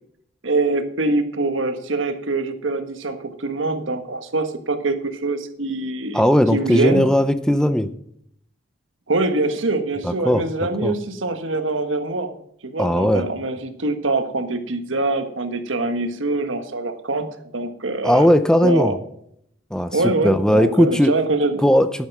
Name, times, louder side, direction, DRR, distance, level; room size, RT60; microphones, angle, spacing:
voice 1, 0.4-6.2 6.5-7.1 9.1-12.3 12.6-18.3 18.6-19.0 19.9-21.7, right 2 dB, 90° right, 8 dB, 1.5 m, -24 dB
voice 2, 6.1-7.9 10.0-10.4 10.8-10.9 12.8-13.3 18.0-19.0 19.7-20.0 20.2-21.1 21.6-22.1, equal, 5° left, 11 dB, 0.5 m, -17 dB
12.0 x 8.8 x 6.0 m, 0.71 s
head